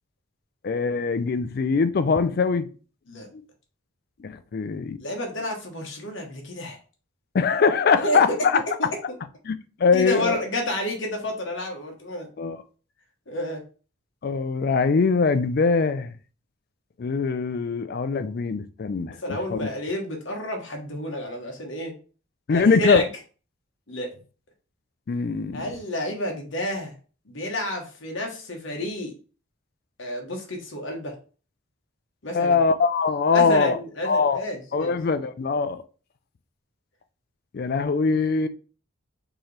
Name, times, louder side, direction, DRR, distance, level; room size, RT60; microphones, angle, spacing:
voice 1, 0.6-2.7 4.2-5.0 7.3-8.6 9.4-10.4 12.4-12.6 14.2-16.1 17.0-19.1 19.5-19.6 22.5-23.0 25.1-25.7 32.3-33.8 34.1-34.4 34.7-35.8 37.5-38.5, left 5 dB, 45° left, 0.3 m, -22 dB
voice 2, 5.0-6.8 7.9-8.2 8.5-9.2 9.9-12.3 13.3-13.6 19.2-21.9 22.5-23.1 23.9-24.1 25.5-26.9 27.3-29.1 30.0-31.1 32.2-32.6 33.3-35.0, left 1 dB, 65° left, 1.1 m, -30 dB
4.6 x 2.9 x 3.2 m
head